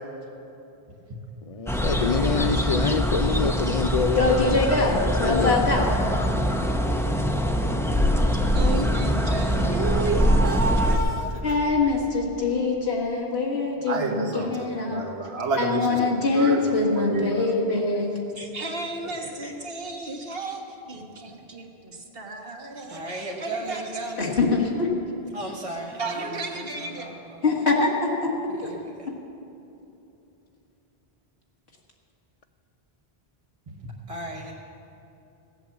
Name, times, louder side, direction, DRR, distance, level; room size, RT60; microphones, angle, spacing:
voice 1, 1.5-4.7 5.2-5.6, left 5 dB, 50° left, 9 dB, 0.4 m, -26 dB
sound 1, 1.7-11.0, equal, 5° left, 0.6 m, -23 dB
voice 2, 4.2-5.9 11.4-15.1 15.6-18.1 19.2-19.5 24.2-24.9 27.4-28.7, left 3 dB, 80° left, -2 dB, 2.0 m, -24 dB
voice 3, 8.5-9.7 10.1-11.1 18.4-24.2 25.7-27.1, right 2 dB, 65° right, 1 dB, 1.7 m, -35 dB
voice 4, 9.4-11.4 13.9-16.0 16.3-17.5, right 3 dB, 85° right, 2 dB, 1.6 m, -28 dB
voice 5, 22.9-24.1 25.3-26.3 27.0-27.1 33.8-34.5, right 1 dB, 35° right, -2 dB, 1.0 m, -35 dB
16.0 x 8.1 x 7.2 m, 2.9 s
omnidirectional pair, 1.0 m